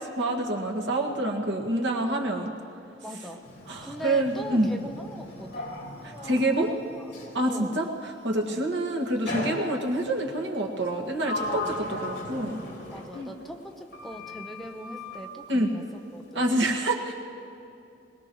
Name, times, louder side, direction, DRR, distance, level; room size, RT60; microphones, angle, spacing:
voice 1, 0.0-2.5 3.7-4.7 6.0-6.7 7.3-12.6 13.1-13.3 15.5-15.7 16.3-17.1, right 1 dB, 80° right, 0 dB, 1.8 m, -27 dB
voice 2, 3.0-3.4 3.8-5.7 6.0-7.1 7.5-7.8 8.4-8.6 11.4-11.8 12.9-15.8 16.1-16.6, equal, ahead, 2 dB, 0.9 m, -41 dB
Sliding door, 3.4-7.4 9.3-10.1 10.8-13.7 13.9-15.2, left 2 dB, 65° left, 3.1 m, -37 dB
22.0 x 19.5 x 3.1 m, 2.7 s
head